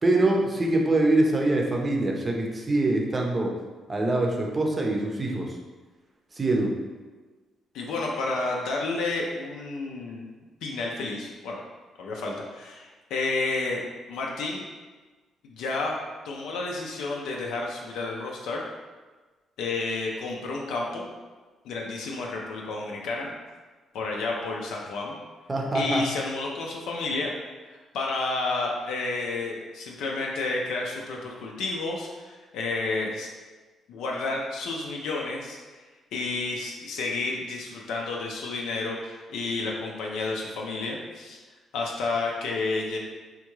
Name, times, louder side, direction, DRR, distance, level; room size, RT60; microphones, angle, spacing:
voice 1, 0.0-3.5 3.9-5.5 6.3-6.8 25.5-26.1, right 2 dB, 25° right, 0 dB, 0.6 m, -24 dB
voice 2, 7.7-10.2 10.6-11.6 12.0-13.8 14.1-14.7 15.4-16.0 16.2-18.6 19.6-21.1 21.6-23.3 23.9-25.2 25.7-27.3 27.7-33.3 33.9-35.8 36.1-41.4 41.7-43.0, left 3 dB, 85° left, -2 dB, 0.4 m, -31 dB
3.6 x 2.2 x 3.0 m, 1.3 s
cardioid pair, 90°, 0 cm